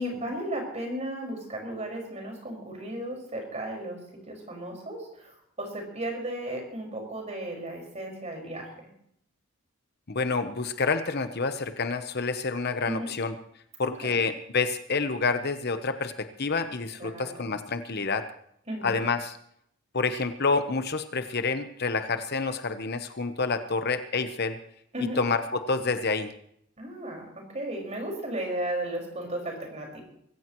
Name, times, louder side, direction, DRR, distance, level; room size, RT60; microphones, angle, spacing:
voice 1, 0.0-8.7 12.8-13.1 13.8-14.2 17.0-17.5 18.7-19.0 24.9-25.2 26.8-30.0, right 1 dB, 30° right, 2 dB, 5.4 m, -35 dB
voice 2, 10.1-13.3 13.8-18.2 18.8-19.4 19.9-24.6 25.2-26.3, left 4 dB, 50° left, 8 dB, 1.0 m, -28 dB
24.0 x 15.0 x 3.1 m, 0.71 s
head